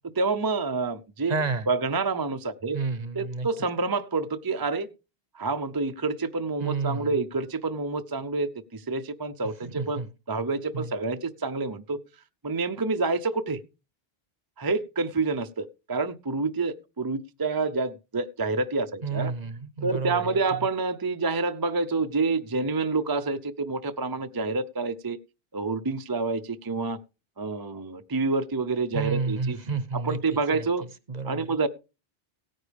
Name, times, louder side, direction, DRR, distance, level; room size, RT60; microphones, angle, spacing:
voice 1, 0.0-1.4 1.7-2.8 3.1-4.9 5.3-10.0 10.3-12.0 12.4-13.6 14.6-19.3 19.8-25.2 25.5-27.0 27.4-29.6 29.9-30.9 31.2-31.7, right 3 dB, 25° right, 10 dB, 0.6 m, -28 dB
voice 2, 1.3-1.7 2.7-3.5 6.6-7.1 9.7-10.1 10.7-10.8 19.0-20.4 28.9-30.2 31.1-31.5, right 4 dB, 45° right, 15 dB, 0.9 m, -30 dB
17.0 x 9.6 x 3.4 m, 0.30 s
omnidirectional pair, 1.0 m